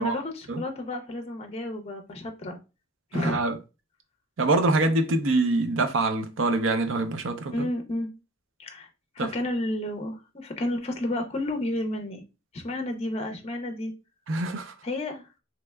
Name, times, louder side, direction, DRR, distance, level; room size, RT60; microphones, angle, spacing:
voice 1, 0.0-2.6 3.1-3.4 7.5-8.1 8.6-8.9 9.2-12.2 12.5-13.9 14.8-15.2, left 1 dB, 30° left, 0.5 m, -31 dB
voice 2, 3.1-3.6 4.4-7.7 9.2-9.3 14.3-14.7, right 2 dB, 70° right, 0.5 m, -25 dB
3.2 x 2.9 x 2.2 m
head